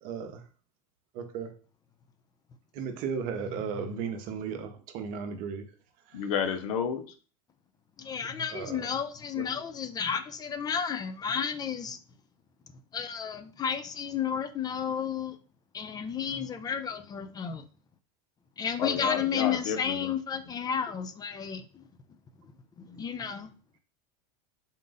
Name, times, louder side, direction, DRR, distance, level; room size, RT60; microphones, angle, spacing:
voice 1, 0.0-0.4 1.1-1.5 2.7-5.6 8.5-8.9 9.4-9.5, right 6 dB, 50° right, 0.8 m, -35 dB
voice 2, 6.1-7.1 18.8-20.1, left 7 dB, 75° left, 0.7 m, -31 dB
voice 3, 8.0-12.0 12.9-15.4 15.7-17.7 18.6-21.9 22.8-23.5, left 7 dB, 20° left, 0.4 m, -32 dB
3.8 x 2.5 x 3.9 m
supercardioid pair, 115°, 18 cm